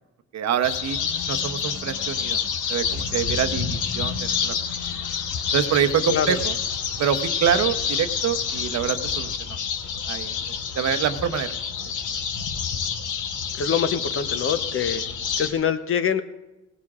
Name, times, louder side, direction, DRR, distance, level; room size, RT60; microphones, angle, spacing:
voice 1, 0.3-1.0 1.3-2.4 2.7-4.5 5.5-6.5 7.0-9.3 10.1-11.5, right 8 dB, 60° right, 9 dB, 0.9 m, -25 dB
sound 1, 0.6-15.5, left 7 dB, 80° left, 1.1 m, -28 dB
voice 2, 6.1-6.4 13.5-15.0 15.4-16.2, left 7 dB, 45° left, 10 dB, 0.8 m, -24 dB
17.5 x 16.0 x 2.5 m, 1.1 s
cardioid pair, 90°, 30 cm